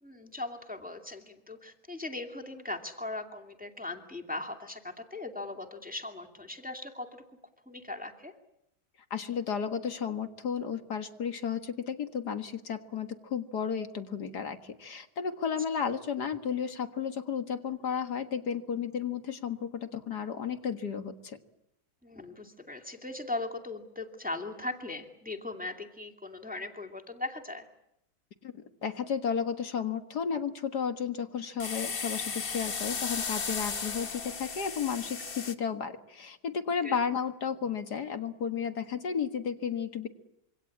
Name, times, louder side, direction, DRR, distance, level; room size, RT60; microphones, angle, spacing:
voice 1, 0.0-7.2 7.7-8.3 22.0-27.7 36.8-37.0, left 2 dB, 5° right, 3 dB, 2.4 m, -39 dB
voice 2, 9.1-21.4 28.4-40.1, left 7 dB, 70° left, 8 dB, 2.3 m, -33 dB
sound 1, 31.6-35.5, left 5 dB, 35° left, 1.4 m, -35 dB
26.5 x 24.5 x 8.6 m, 0.81 s
omnidirectional pair, 1.8 m